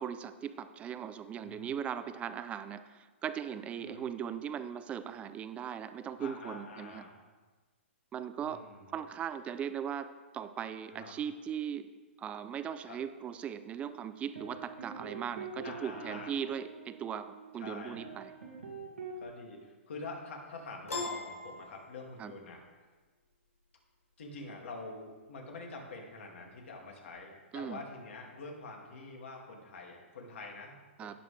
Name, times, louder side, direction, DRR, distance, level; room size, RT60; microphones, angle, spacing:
voice 1, 0.0-7.0 8.1-8.6 8.9-11.9 12.2-18.3 22.2-22.3 27.5-27.8 31.0-31.1, right 8 dB, 15° right, 11 dB, 0.5 m, -39 dB
voice 2, 1.4-1.7 3.9-4.0 6.2-7.1 8.4-8.9 10.9-11.2 12.9-13.0 15.6-16.3 17.6-18.0 19.2-22.6 24.2-31.1, left 3 dB, 70° left, 0 dB, 2.5 m, -46 dB
sound 1, 13.8-19.2, right 5 dB, 85° right, 2.2 m, -46 dB
Piano, 20.9-22.4, left 3 dB, 90° left, 2.3 m, -39 dB
16.5 x 6.0 x 3.4 m, 1.3 s
hypercardioid pair, 135°, 7 cm